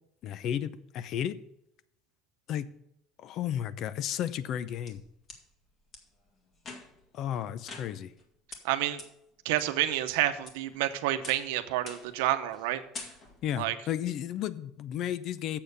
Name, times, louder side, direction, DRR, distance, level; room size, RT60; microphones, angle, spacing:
voice 1, 0.2-1.4 2.5-2.7 3.2-5.0 7.1-8.1 13.4-15.6, left 10 dB, 50° left, 16 dB, 0.6 m, -33 dB
sound 1, 4.4-5.4 5.9-6.0 6.6-7.1 7.7-8.2 8.5-8.6 9.0-9.1 9.6-10.1 10.5-10.8 11.2-11.5 11.9-12.2 12.5-12.7 12.9-13.5, left 3 dB, 35° left, 2.0 m, -45 dB
voice 2, 8.6-9.0 9.4-12.8 13.6-13.7, right 13 dB, 85° right, 10 dB, 0.8 m, -29 dB
7.6 x 6.5 x 6.8 m, 0.78 s
supercardioid pair, 120°, 0 cm